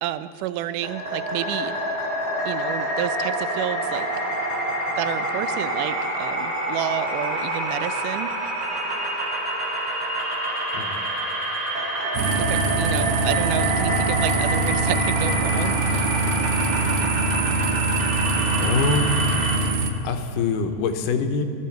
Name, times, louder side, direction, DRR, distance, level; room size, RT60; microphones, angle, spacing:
voice 1, 0.0-1.8 2.5-4.1 5.0-8.5 12.4-16.2, right 12 dB, 85° right, 12 dB, 2.1 m, -30 dB
sound 1, 0.8-19.6, right 1 dB, 30° right, 2.9 m, -27 dB
voice 2, 10.7-11.1 17.0-17.7 18.6-19.2 20.0-21.4, left 4 dB, 90° left, 7 dB, 2.5 m, -26 dB
sound 2, 12.1-19.9, right 3 dB, 70° right, 1.7 m, -24 dB
20.5 x 12.5 x 4.5 m, 2.5 s
omnidirectional pair, 3.7 m